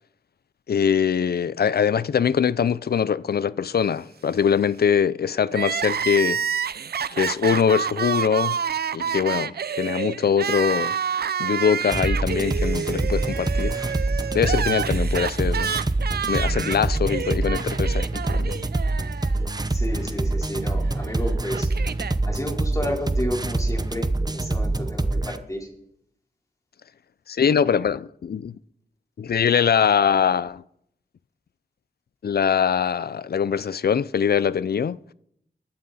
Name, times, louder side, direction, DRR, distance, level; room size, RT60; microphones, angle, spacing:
voice 1, 0.7-6.4 7.1-8.6 8.9-11.0 11.4-13.7 14.3-15.8 16.3-18.6 27.3-28.6 29.2-30.6 32.2-35.0, left 7 dB, 75° left, 0.5 m, -22 dB
Crying sobbing, 5.5-19.7 19.9-20.0 21.0-22.2, right 7 dB, 80° right, 0.5 m, -28 dB
voice 2, 9.0-9.5 19.6-21.7 22.2-25.7, equal, 20° left, 3.9 m, -31 dB
sound 1, 11.9-25.4, right 2 dB, 25° right, 0.9 m, -25 dB
21.5 x 11.5 x 4.2 m
wide cardioid pair, 60°, 16 cm